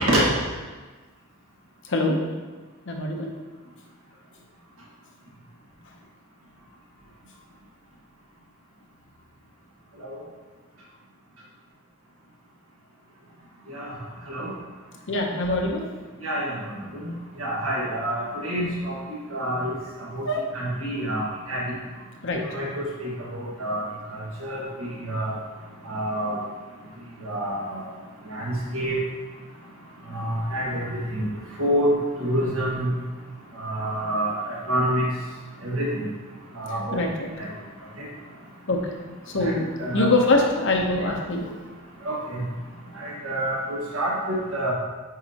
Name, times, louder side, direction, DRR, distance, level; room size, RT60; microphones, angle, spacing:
voice 1, 1.8-2.2 2.9-3.3 15.1-15.9 20.2-20.4 22.2-22.4 36.9-37.3 38.7-39.0 39.3-41.5, left 2 dB, 60° left, 1 dB, 0.8 m, -23 dB
voice 2, 16.2-16.6 17.4-18.9 19.3-19.8 20.1-20.2 20.5-21.6 22.5-23.1 23.6-23.8 24.4-24.6 25.0-25.3 25.9-26.4 27.2-27.8 28.3-29.0 30.1-30.8 31.1-31.2 31.6-31.9 32.2-32.9 33.6-35.0 35.6-36.0 36.6-37.0 39.4-39.5 39.8-40.1 42.0-42.4 43.0-44.7, right 1 dB, 70° right, -5 dB, 1.8 m, -27 dB
8.5 x 4.1 x 2.9 m, 1.3 s
head